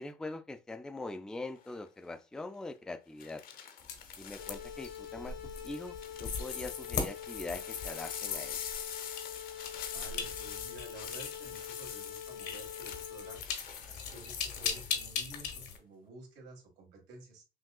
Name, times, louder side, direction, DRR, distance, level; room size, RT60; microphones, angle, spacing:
voice 1, 0.0-3.4 4.2-5.4 5.6-5.9 6.2-8.6, left 2 dB, 5° left, 0.3 m, -42 dB
sound 1, 1.6-1.9 3.2-5.1 5.7-14.9 15.3-15.8, left 8 dB, 60° left, 0.8 m, -45 dB
sound 2, 3.8-15.8, left 6 dB, 75° left, 1.1 m, -40 dB
sound 3, 4.4-13.4, left 9 dB, 90° left, 1.7 m, -45 dB
voice 2, 9.9-13.4 13.9-17.4, right 2 dB, 80° right, 1.8 m, -52 dB
5.9 x 2.6 x 2.3 m
cardioid pair, 110°, 17 cm